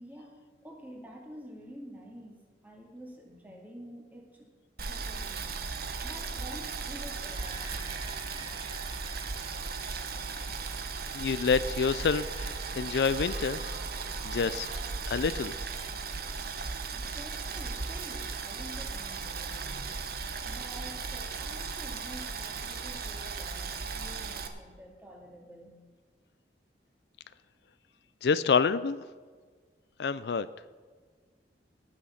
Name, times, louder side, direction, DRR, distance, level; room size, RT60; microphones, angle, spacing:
voice 1, 0.0-4.5 4.8-5.8 6.0-7.6 16.9-20.0 20.4-25.8, equal, 10° right, -1 dB, 2.2 m, -48 dB
Boiling, 4.8-24.5, right 4 dB, 55° right, 1.0 m, -36 dB
sound 1, 7.3-15.5, right 2 dB, 35° right, 2.2 m, -50 dB
voice 2, 11.1-13.6 14.2-14.7 15.1-15.5 28.2-29.0 30.0-30.5, left 5 dB, 65° left, 14 dB, 0.4 m, -27 dB
18.0 x 6.5 x 5.8 m, 1.5 s
head